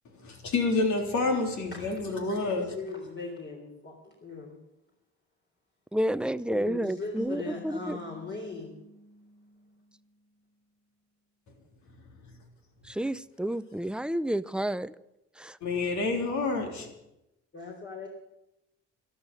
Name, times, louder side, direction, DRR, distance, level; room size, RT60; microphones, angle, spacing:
voice 1, 0.2-2.7 15.6-16.9, left 3 dB, 70° left, 3 dB, 3.5 m, -28 dB
voice 2, 1.7-2.1 2.4-4.6 6.5-8.8 17.5-18.1, left 3 dB, 40° left, -1 dB, 3.7 m, -39 dB
voice 3, 5.9-8.0 12.9-14.9 15.4-15.6, right 1 dB, 5° right, 15 dB, 0.5 m, -30 dB
sound 1, 7.2-10.5, equal, 20° left, 1.7 m, -49 dB
12.5 x 12.5 x 6.9 m, 0.88 s
cardioid pair, 90°, 30 cm